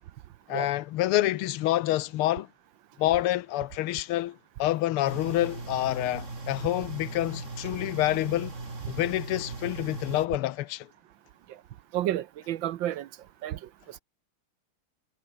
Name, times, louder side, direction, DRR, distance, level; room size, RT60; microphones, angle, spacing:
voice 1, 0.5-2.5 3.0-8.5 8.9-10.9, left 15 dB, 90° left, 1.7 m, -27 dB
sound 1, 5.0-10.3, right 3 dB, 35° right, 3.7 m, -39 dB
voice 2, 11.9-13.1 13.4-13.6 13.9-14.0, right 12 dB, 70° right, 1.4 m, -31 dB
omnidirectional pair, 2.4 m